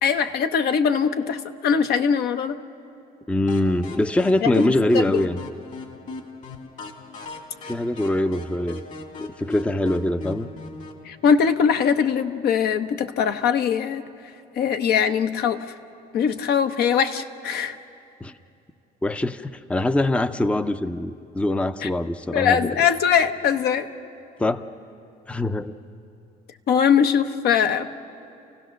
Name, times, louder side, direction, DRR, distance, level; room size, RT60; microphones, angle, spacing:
voice 1, 0.0-2.6 4.4-4.7 4.9-5.3 11.0-14.0 14.6-15.6 16.1-17.8 21.8-21.9 22.3-23.9 26.7-27.9, left 7 dB, 70° left, 8 dB, 0.9 m, -21 dB
voice 2, 3.3-5.4 7.7-8.8 9.2-10.5 18.2-18.3 19.0-22.7 24.4-24.6 25.3-25.7, left 1 dB, 5° left, 12 dB, 0.5 m, -23 dB
sound 1, 3.5-11.0, left 3 dB, 45° left, 2.2 m, -39 dB
29.0 x 15.5 x 6.4 m, 2.7 s
cardioid pair, 110°, 17 cm